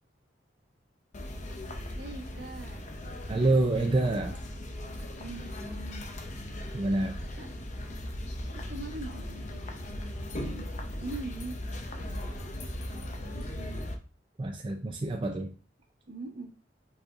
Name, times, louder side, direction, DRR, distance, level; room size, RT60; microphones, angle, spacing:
sound 1, 1.1-14.0, left 1 dB, 45° left, 0.6 m, -38 dB
voice 1, 2.0-2.8 5.2-6.1 7.3-7.5 8.4-10.7 11.0-11.6 12.0-12.5 12.9-13.7 16.1-16.5, right 2 dB, 65° right, 2 dB, 1.1 m, -43 dB
voice 2, 3.3-4.4 6.7-7.2 14.4-15.5, right 2 dB, 30° right, 2 dB, 0.4 m, -27 dB
5.1 x 4.2 x 2.5 m, 0.38 s
head